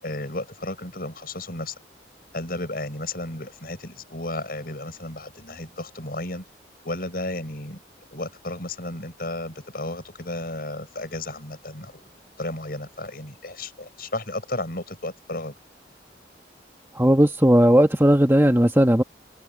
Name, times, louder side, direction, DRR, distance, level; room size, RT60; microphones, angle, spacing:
voice 1, 0.0-1.7 2.3-6.4 6.8-7.8 8.1-12.0 12.4-15.5, left 2 dB, 50° left, 7.8 m, -33 dB
voice 2, 16.9-19.0, equal, 15° right, 1.3 m, -17 dB
head